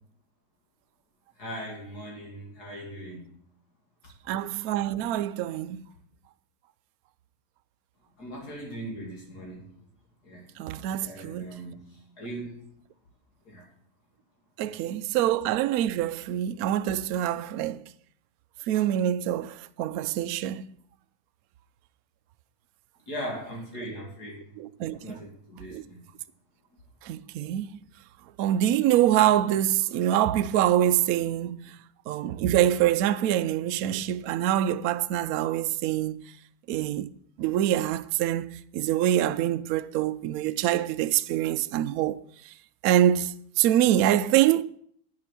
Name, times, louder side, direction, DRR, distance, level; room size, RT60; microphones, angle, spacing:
voice 1, 1.4-3.2 8.2-9.7 10.2-10.5 11.0-12.6 13.5-13.7 14.6-14.9 23.1-24.4 24.9-26.0, equal, 55° left, 3.1 m, -39 dB
voice 2, 4.3-5.8 10.6-11.5 14.6-17.8 18.7-20.6 24.6-25.2 25.7-25.8 27.0-27.8 28.4-31.6 32.1-36.2 36.7-37.1 37.4-42.2 42.8-44.6, right 12 dB, 85° right, 0.7 m, -25 dB
9.5 x 7.7 x 5.9 m
omnidirectional pair, 2.1 m